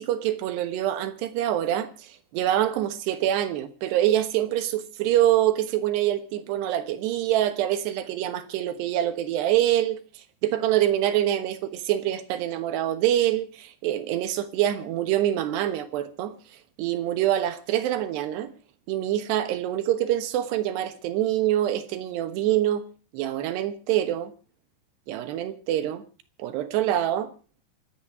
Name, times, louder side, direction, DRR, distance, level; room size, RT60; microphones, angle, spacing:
voice 1, 0.0-10.0 10.4-16.3 16.8-18.5 18.9-22.8 23.1-24.3 25.1-26.0 26.4-27.3, right 12 dB, 85° right, 3.4 m, -25 dB
27.5 x 9.2 x 4.7 m
omnidirectional pair, 4.7 m